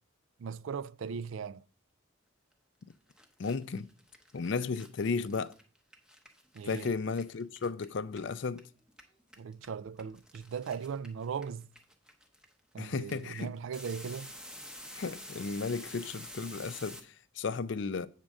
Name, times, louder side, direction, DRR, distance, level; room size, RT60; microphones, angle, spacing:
voice 1, 0.4-1.6 6.5-6.9 9.4-11.7 12.7-14.3, right 6 dB, 65° right, 0.3 m, -38 dB
sound 1, 2.8-2.9 3.1-8.6 8.9-17.0, equal, 5° right, 0.7 m, -49 dB
voice 2, 3.4-3.9 4.3-5.5 6.6-8.6 12.8-13.5 14.9-18.1, left 4 dB, 60° left, 0.4 m, -34 dB
8.6 x 3.6 x 6.4 m
head